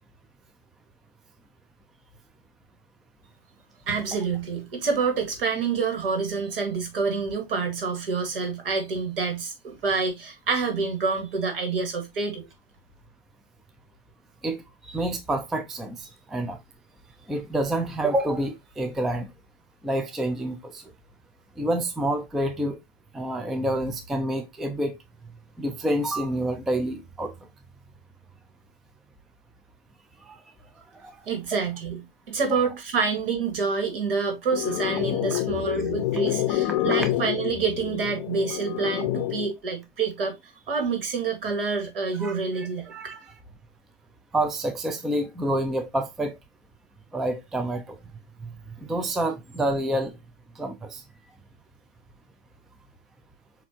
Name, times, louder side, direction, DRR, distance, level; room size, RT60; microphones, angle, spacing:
voice 1, 3.9-12.5 31.3-32.0 32.3-40.4 40.7-42.9, right 5 dB, 70° right, 1.9 m, -27 dB
voice 2, 14.4-16.6 17.3-19.3 19.8-20.8 21.6-22.8 23.1-25.0 25.6-27.3 30.3-30.4 30.9-31.1 32.4-32.6 42.2-43.3 44.3-46.4 47.1-48.0 48.4-48.5 48.8-50.1 50.6-51.0, right 1 dB, ahead, 0.3 m, -28 dB
sound 1, 34.5-39.5, left 13 dB, 40° left, 0.6 m, -27 dB
6.8 x 2.6 x 2.9 m
hypercardioid pair, 105°, 29 cm